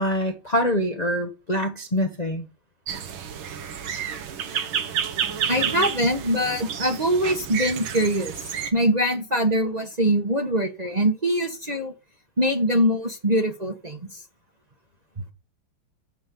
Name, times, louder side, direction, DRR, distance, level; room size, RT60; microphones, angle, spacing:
voice 1, 0.0-2.4, equal, 30° left, 0.8 m, -25 dB
sound 1, 2.9-8.7, right 8 dB, 70° right, 1.9 m, -30 dB
voice 2, 5.5-11.9 12.4-14.2, equal, 25° right, 1.2 m, -23 dB
8.9 x 5.4 x 7.8 m
omnidirectional pair, 2.4 m